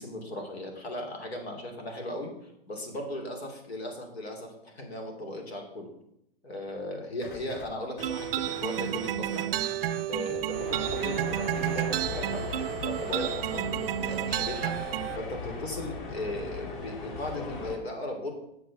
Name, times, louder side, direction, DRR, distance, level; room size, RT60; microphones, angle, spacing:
voice 1, 0.0-5.9 6.4-9.4 10.1-14.7 15.1-18.3, left 1 dB, 90° left, 3 dB, 3.3 m, -37 dB
sound 1, 7.2-7.7 8.0-13.4, left 5 dB, 30° left, 1.2 m, -45 dB
sound 2, 8.0-15.2, right 12 dB, 70° right, 0.5 m, -31 dB
sound 3, 10.5-17.8, left 4 dB, 55° left, 3.4 m, -39 dB
8.8 x 6.5 x 7.2 m, 0.79 s
hypercardioid pair, 125°, 31 cm